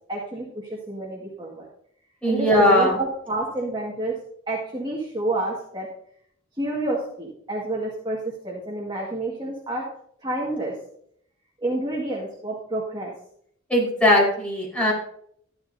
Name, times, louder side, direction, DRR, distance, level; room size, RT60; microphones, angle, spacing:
voice 1, 0.1-1.7 2.2-4.2 4.5-5.9 6.6-9.8 10.2-10.7 11.6-13.1, right 2 dB, 20° right, -4 dB, 1.9 m, -29 dB
voice 2, 2.2-3.0 13.7-14.9, left 1 dB, 5° left, -4 dB, 4.6 m, -19 dB
13.5 x 12.0 x 2.7 m, 0.69 s
head